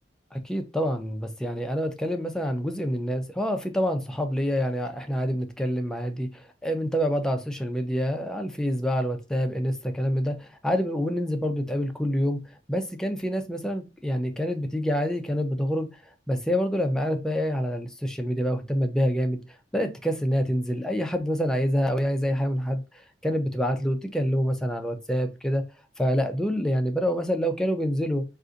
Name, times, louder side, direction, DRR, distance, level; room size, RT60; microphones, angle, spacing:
voice 1, 0.3-12.4 12.7-15.9 16.3-19.4 19.7-22.8 23.2-25.6 26.0-28.2, equal, 5° left, 0.4 m, -27 dB
3.8 x 2.5 x 2.5 m
head